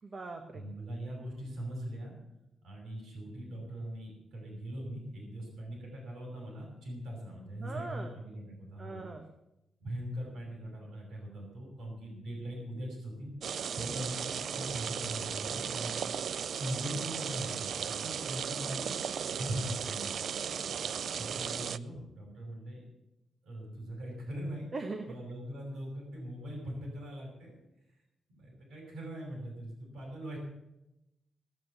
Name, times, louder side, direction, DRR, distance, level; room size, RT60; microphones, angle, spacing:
voice 1, 0.0-0.7 7.6-8.1 8.8-9.2 20.6-21.1 24.7-25.2, right 3 dB, 30° right, 6 dB, 1.1 m, -41 dB
voice 2, 0.5-2.2 2.6-9.0 9.8-13.3 13.8-16.0 16.5-20.4 21.2-22.8 23.4-24.6 25.1-27.6 28.3-30.4, equal, 85° right, -1 dB, 6.3 m, -41 dB
sound 1, 13.4-21.8, right 7 dB, 55° right, 0.4 m, -36 dB
18.5 x 8.5 x 7.1 m, 0.90 s
wide cardioid pair, 175°, 0 cm